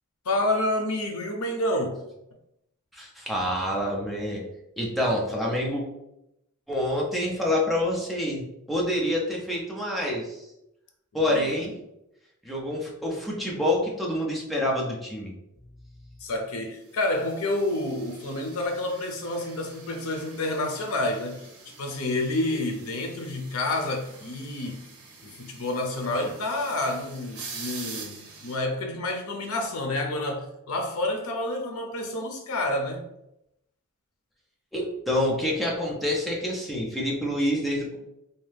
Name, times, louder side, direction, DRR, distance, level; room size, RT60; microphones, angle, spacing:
voice 1, 0.3-2.0 11.1-11.6 16.2-21.5 21.8-24.8 25.2-33.0, left 1 dB, 80° left, 0.5 m, -29 dB
voice 2, 2.9-4.4 4.8-5.8 6.7-10.4 11.1-11.8 12.4-15.3 34.7-38.0, left 1 dB, ahead, 0.6 m, -27 dB
sound 1, 17.0-28.6, right 4 dB, 80° right, 0.6 m, -45 dB
2.7 x 2.1 x 3.2 m
head